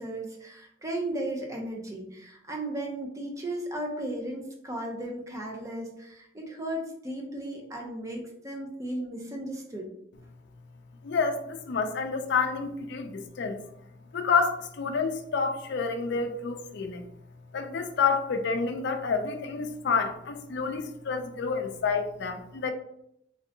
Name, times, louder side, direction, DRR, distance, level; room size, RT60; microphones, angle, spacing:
voice 1, 0.0-9.9, right 1 dB, 15° right, 0 dB, 0.6 m, -35 dB
voice 2, 11.0-13.7 14.1-17.0 17.5-22.7, left 5 dB, 65° left, 7 dB, 0.4 m, -29 dB
3.2 x 2.6 x 2.7 m, 0.75 s
head